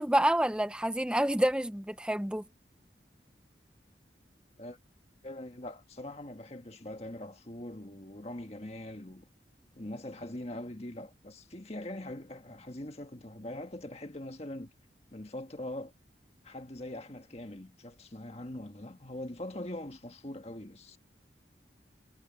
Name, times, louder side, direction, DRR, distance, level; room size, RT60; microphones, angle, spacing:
voice 1, 0.0-2.4, right 1 dB, 5° right, 0.7 m, -28 dB
voice 2, 5.2-9.2 9.7-14.7 15.1-15.9 16.4-21.0, left 1 dB, 35° left, 1.6 m, -42 dB
head